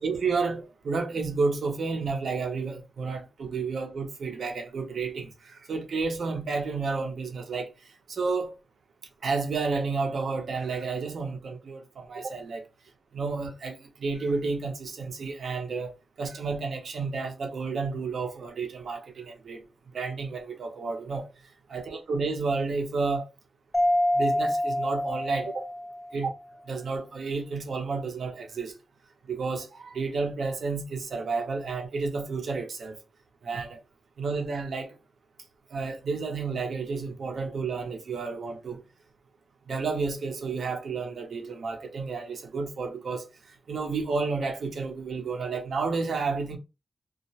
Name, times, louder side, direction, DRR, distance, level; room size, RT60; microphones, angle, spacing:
voice 1, 0.0-7.7 8.1-8.5 9.2-12.6 13.1-19.6 19.9-21.3 21.7-23.3 24.1-25.7 26.1-26.3 26.7-28.8 29.3-33.0 33.4-33.8 34.2-34.9 35.7-38.8 39.7-43.3 43.7-46.6, right 4 dB, 70° right, 0.6 m, -31 dB
Mallet percussion, 23.7-26.3, left 1 dB, 15° left, 0.3 m, -26 dB
2.3 x 2.1 x 2.7 m
wide cardioid pair, 175°, 0 cm